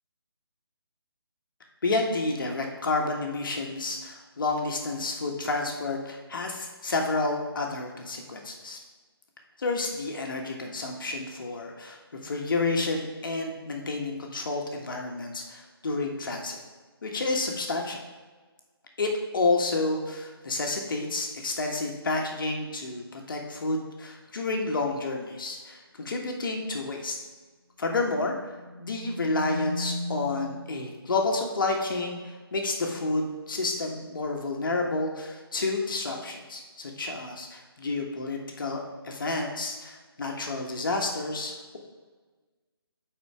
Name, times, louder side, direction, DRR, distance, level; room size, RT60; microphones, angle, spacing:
voice 1, 1.8-8.8 9.6-16.6 17.0-18.0 19.0-27.2 27.8-41.8, left 3 dB, 55° left, 1 dB, 1.4 m, -30 dB
sound 1, 28.3-30.9, left 1 dB, 20° right, 2.4 m, -36 dB
8.2 x 4.4 x 4.8 m, 1.4 s
figure-of-eight pair, 160°, 13 cm